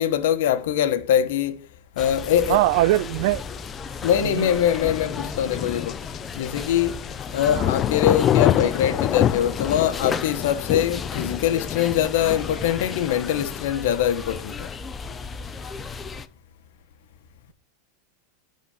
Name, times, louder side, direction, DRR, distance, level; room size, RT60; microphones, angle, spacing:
voice 1, 0.0-1.7 1.9-2.6 4.0-6.0 6.3-14.7, left 10 dB, 70° left, 1.3 m, -23 dB
sound 1, 2.0-13.7, left 11 dB, 35° left, 0.3 m, -28 dB
sound 2, 2.0-16.3, left 4 dB, 20° left, 0.8 m, -35 dB
voice 2, 2.5-3.4 4.2-4.5 7.5-7.7, right 17 dB, 65° right, 0.4 m, -21 dB
12.5 x 4.3 x 6.6 m
supercardioid pair, 125°, 0 cm